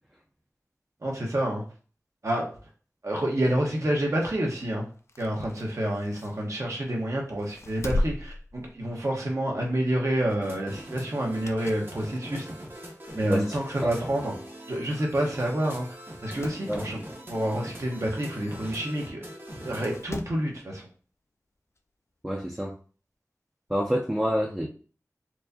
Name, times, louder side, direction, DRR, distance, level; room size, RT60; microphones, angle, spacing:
voice 1, 1.0-1.6 2.2-2.4 3.0-4.9 5.2-12.5 13.1-14.3 14.7-15.9 16.2-17.0 17.3-19.2 19.6-20.8, right 1 dB, 60° right, -1 dB, 1.1 m, -28 dB
sound 1, 5.0-6.9 7.4-9.3 9.6-9.8 11.1-12.0 12.4-12.5 13.4-13.5 13.7-13.8 14.0-14.1 15.0-15.2 15.5-15.6 16.0-16.7 18.5-18.6 19.6-20.5 21.8-21.9, left 1 dB, 50° left, 0.4 m, -36 dB
sound 2, 10.3-20.0, equal, 40° right, 0.9 m, -42 dB
voice 2, 22.2-22.8 23.7-24.7, equal, 10° right, -1 dB, 0.5 m, -27 dB
4.5 x 2.7 x 2.7 m, 0.40 s
wide cardioid pair, 65°, 6 cm